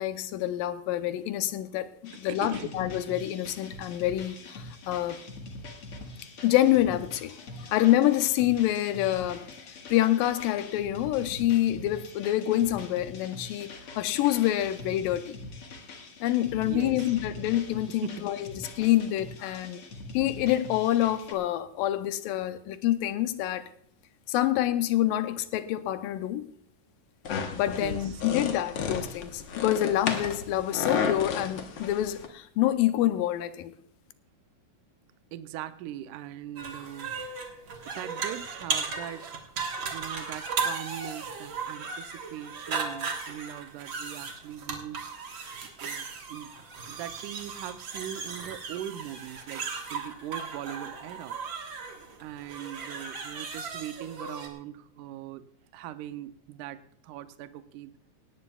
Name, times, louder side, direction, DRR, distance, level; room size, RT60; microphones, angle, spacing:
voice 1, 0.0-5.2 6.4-9.5 9.9-15.4 16.2-19.8 20.1-23.7 24.3-26.5 27.5-33.7, left 13 dB, 90° left, 2.4 m, -27 dB
sound 1, 2.0-21.3, left 2 dB, 50° left, 2.0 m, -44 dB
voice 2, 2.3-2.8 16.7-17.1 18.0-18.3 27.8-28.2 35.3-37.1 37.9-39.6 39.9-45.1 45.6-46.5 46.9-51.4 52.2-55.4 55.7-57.9, right 12 dB, 80° right, 2.1 m, -40 dB
sound 2, 27.2-32.3, left 6 dB, 70° left, 1.2 m, -32 dB
sound 3, 36.6-54.5, right 5 dB, 50° right, 1.6 m, -36 dB
17.5 x 17.5 x 2.3 m
omnidirectional pair, 3.9 m